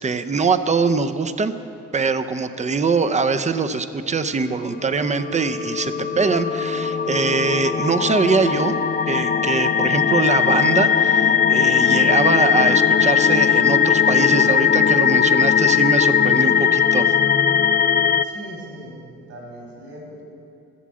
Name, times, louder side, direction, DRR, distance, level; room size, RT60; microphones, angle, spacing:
voice 1, 0.0-1.5 1.9-8.7 9.1-17.1, right 4 dB, 25° right, 9 dB, 0.7 m, -22 dB
sound 1, 5.0-18.2, left 7 dB, 30° left, 0.4 m, -18 dB
voice 2, 18.2-19.0 19.3-20.2, equal, 70° right, 0 dB, 4.0 m, -39 dB
15.0 x 7.3 x 7.5 m, 2.7 s
cardioid pair, 90°, 30 cm